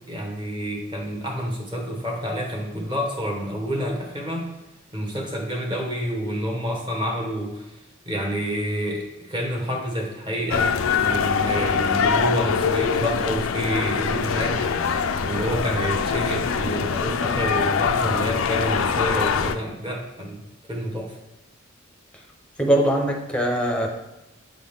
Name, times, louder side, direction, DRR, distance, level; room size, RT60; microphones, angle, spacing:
voice 1, 0.1-4.5 4.9-7.7 8.0-10.7 11.0-14.9 15.2-21.2, equal, 25° right, 0 dB, 1.2 m, -28 dB
sound 1, 10.5-19.5, left 6 dB, 75° left, 0.4 m, -23 dB
voice 2, 22.6-23.9, right 1 dB, 5° left, 2 dB, 0.8 m, -21 dB
7.9 x 3.9 x 3.5 m, 0.98 s
head